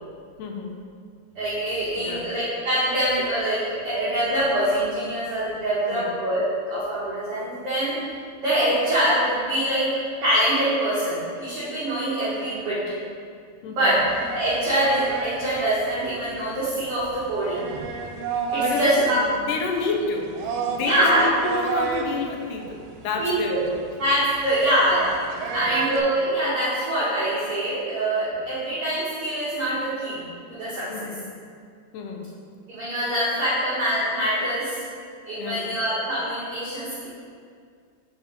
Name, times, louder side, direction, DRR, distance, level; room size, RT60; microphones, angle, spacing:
voice 1, 0.4-0.8 2.0-2.3 5.9-6.2 13.6-13.9 18.6-23.8 25.6-25.8 30.9-31.2 31.9-32.3 35.4-35.8, left 4 dB, 80° left, 2 dB, 1.9 m, -30 dB
voice 2, 1.3-7.9 8.4-9.9 10.2-12.8 13.6-17.7 18.5-19.2 20.8-21.3 23.2-23.6 24.0-30.2 30.5-31.1 32.7-34.8 35.2-37.1, right 1 dB, 55° right, -10 dB, 1.7 m, -24 dB
sound 1, 14.0-26.0, right 5 dB, 85° right, 2.4 m, -32 dB
7.3 x 4.1 x 5.0 m, 2.2 s
omnidirectional pair, 4.3 m